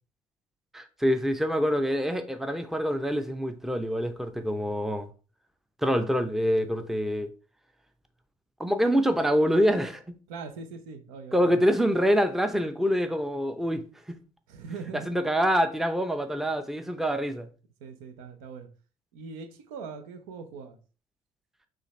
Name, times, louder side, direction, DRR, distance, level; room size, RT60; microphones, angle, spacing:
voice 1, 0.7-5.1 5.8-7.3 8.6-10.0 11.3-14.2 15.1-17.5, equal, ahead, 0.6 m, -25 dB
voice 2, 10.3-11.7 14.5-15.1 17.8-18.7 19.1-20.8, right 5 dB, 70° right, 0.7 m, -41 dB
6.3 x 2.5 x 3.1 m
figure-of-eight pair, 50°, 18 cm